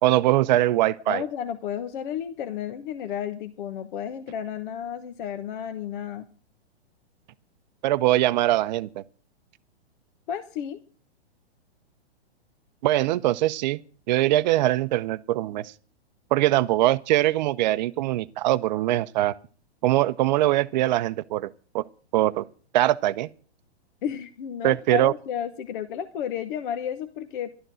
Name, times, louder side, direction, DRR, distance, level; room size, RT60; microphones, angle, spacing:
voice 1, 0.0-1.2 7.8-9.0 12.8-13.8 14.1-15.7 16.3-19.3 19.8-21.8 22.1-22.5 22.7-23.3 24.6-25.1, right 15 dB, 45° right, 0.7 m, -22 dB
voice 2, 1.1-6.3 10.3-10.8 24.0-27.5, left 9 dB, 50° left, 1.1 m, -32 dB
12.0 x 12.0 x 6.3 m
hypercardioid pair, 130°, 32 cm